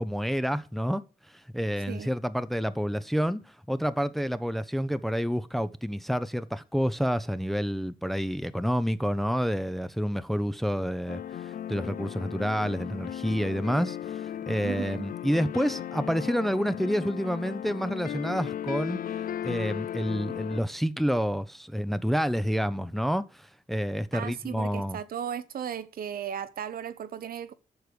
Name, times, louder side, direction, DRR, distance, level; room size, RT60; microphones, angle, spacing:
voice 1, 0.0-19.0 19.4-25.0, equal, ahead, 0.6 m, -29 dB
sound 1, 11.1-20.6, left 10 dB, 70° left, 0.4 m, -36 dB
voice 2, 14.6-15.0 24.1-27.5, right 8 dB, 75° right, 0.7 m, -36 dB
8.0 x 6.7 x 6.7 m
wide cardioid pair, 125°, 15 cm